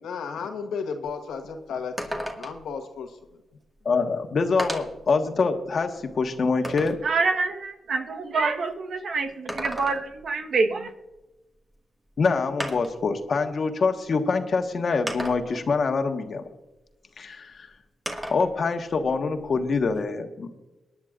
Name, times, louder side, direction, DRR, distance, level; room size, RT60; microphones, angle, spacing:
voice 1, 0.0-3.4, left 5 dB, 85° left, 5 dB, 1.4 m, -34 dB
sound 1, 1.0-1.1 1.5-1.6 2.0-2.7 3.8-3.9 4.6-5.1 5.6-7.1 9.3-10.3 11.7-11.8 12.6-13.1 14.1-14.2 15.1-15.7 18.1-18.5 18.9-20.0, equal, 15° right, 2.0 m, -34 dB
voice 2, 3.8-7.0 12.2-16.4 17.2-17.7 18.3-20.5, left 4 dB, 60° left, 5 dB, 1.4 m, -25 dB
voice 3, 7.0-10.9, right 4 dB, 65° right, 5 dB, 1.3 m, -26 dB
23.0 x 10.5 x 2.5 m, 1.0 s
cardioid pair, 60°, 0 cm